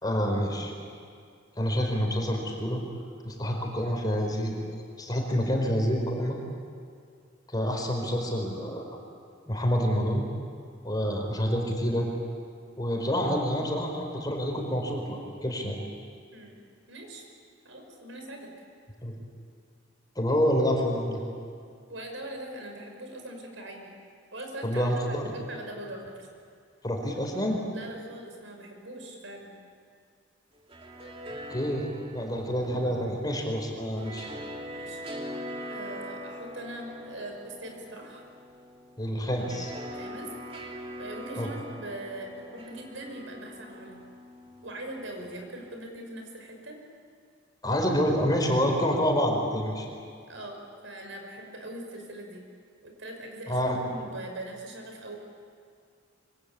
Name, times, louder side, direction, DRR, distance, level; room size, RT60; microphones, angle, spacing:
voice 1, 0.0-0.7 1.6-2.8 3.2-4.6 5.0-6.4 7.5-8.9 9.5-10.2 10.8-12.1 12.8-15.8 19.0-19.1 20.1-21.2 24.6-25.3 26.8-27.6 31.5-34.3 39.0-39.7 41.4-41.5 47.6-49.9 53.5-53.8, equal, 20° left, 2 dB, 4.7 m, -27 dB
voice 2, 16.9-17.2 17.6-18.5 21.9-24.0 24.3-26.3 27.7-29.6 34.7-35.0 35.7-38.2 39.9-40.3 41.0-44.0 44.6-46.8 50.3-52.5 52.8-55.2, right 1 dB, 75° right, 3 dB, 5.9 m, -41 dB
sound 1, 30.5-45.7, equal, 30° right, 2.8 m, -43 dB
26.5 x 24.5 x 8.8 m, 2.3 s
head